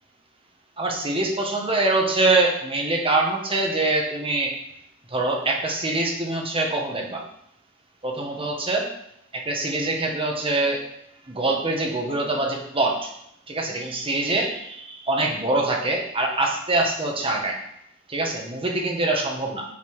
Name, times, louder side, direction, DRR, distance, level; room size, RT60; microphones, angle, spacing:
voice 1, 0.8-4.5 5.1-7.2 8.0-8.9 9.3-10.8 11.3-12.9 13.5-14.8 15.1-17.6 18.1-19.6, right 2 dB, 25° right, 1 dB, 1.6 m, -24 dB
7.7 x 5.9 x 6.2 m, 0.76 s
head